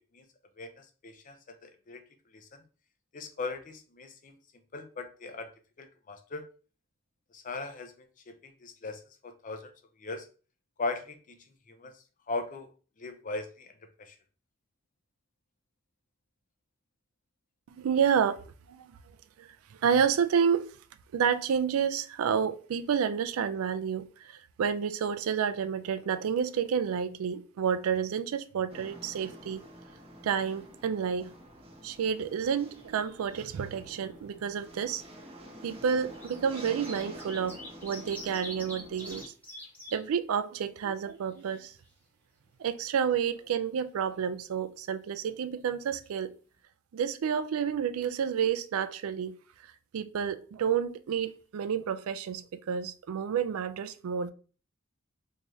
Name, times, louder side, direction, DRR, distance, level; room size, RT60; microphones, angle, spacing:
voice 1, 0.6-2.0 2.3-2.6 3.1-4.4 4.7-5.5 5.8-6.5 7.3-9.7 10.0-10.3 10.8-11.4 11.7-12.7 13.0-14.2, left 3 dB, 40° left, 0.5 m, -39 dB
voice 2, 17.7-18.9 19.4-20.7 21.1-29.6 30.2-31.3 31.8-35.0 35.6-39.3 39.9-41.7 42.6-46.3 46.9-49.4 49.6-54.3, right 7 dB, 80° right, 0.3 m, -30 dB
sound 1, 28.7-39.2, equal, 25° right, 0.7 m, -48 dB
sound 2, 32.5-33.3 33.5-33.6 34.7-34.9 35.8-40.0 40.4-40.5 40.8-41.9 45.7-45.8 46.1-46.2, left 1 dB, 10° left, 1.0 m, -46 dB
3.5 x 2.7 x 3.0 m
head